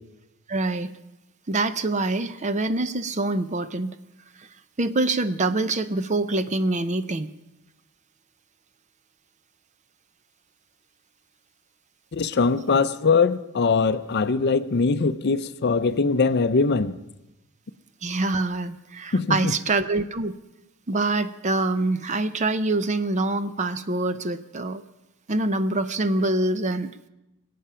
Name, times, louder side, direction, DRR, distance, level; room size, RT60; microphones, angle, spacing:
voice 1, 0.5-0.9 1.5-3.9 4.8-7.3 18.0-20.3 20.9-24.8 25.3-26.9, right 2 dB, 35° right, 12 dB, 0.6 m, -25 dB
voice 2, 12.1-17.0 19.1-19.5, left 4 dB, 50° left, 13 dB, 0.5 m, -22 dB
24.5 x 8.5 x 5.6 m, 0.95 s
head